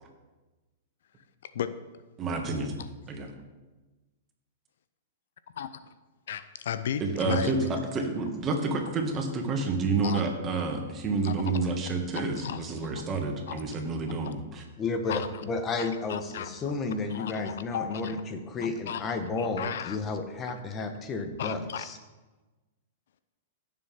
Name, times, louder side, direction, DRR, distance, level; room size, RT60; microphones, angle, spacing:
voice 1, 1.4-1.8 2.8-2.9 5.6-5.7 6.3-7.5 10.0-10.2 11.2-11.3 12.1-12.6 13.5-13.6 14.2-14.3 15.1-15.4 15.8-16.7 17.1-18.2 18.6-20.0 21.4-21.9, left 9 dB, 70° left, 13 dB, 0.6 m, -35 dB
voice 2, 2.2-2.7 3.1-3.3 7.0-14.6, right 3 dB, 30° right, 2 dB, 2.1 m, -29 dB
voice 3, 14.8-22.0, left 3 dB, 25° left, 6 dB, 1.4 m, -32 dB
16.0 x 7.1 x 3.8 m, 1.2 s
hypercardioid pair, 110°, 0 cm